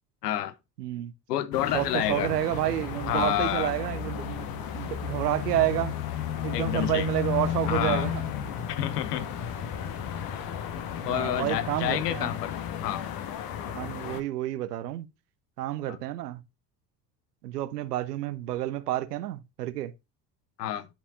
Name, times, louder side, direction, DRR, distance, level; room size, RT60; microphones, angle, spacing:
voice 1, 0.2-0.5 1.3-2.3 3.1-3.7 6.5-7.1 7.7-8.1 8.7-9.3 11.0-13.0 15.9-16.0 20.6-20.9, left 12 dB, 70° left, 0.9 m, -29 dB
voice 2, 0.8-1.1 1.7-4.5 4.7-6.0 6.4-8.2 11.0-12.3 13.7-15.1 15.6-16.4 17.4-19.9, right 14 dB, 70° right, 0.7 m, -29 dB
sound 1, 1.5-14.2, left 9 dB, 45° left, 1.2 m, -33 dB
10.5 x 5.4 x 2.5 m
figure-of-eight pair, 65°, 49 cm